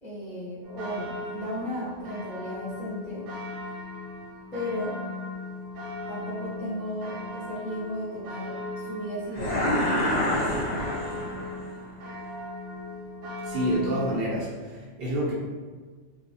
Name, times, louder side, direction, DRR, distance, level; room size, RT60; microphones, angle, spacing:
voice 1, 0.0-3.3 4.5-5.0 6.1-10.5, equal, 5° left, -9 dB, 0.4 m, -35 dB
sound 1, 0.6-14.2, left 2 dB, 85° right, 0.9 m, -38 dB
sound 2, 9.3-11.7, left 1 dB, 65° left, 0.7 m, -27 dB
voice 2, 13.4-15.3, equal, 65° right, -6 dB, 0.7 m, -28 dB
2.3 x 2.0 x 2.6 m, 1.4 s
omnidirectional pair, 1.2 m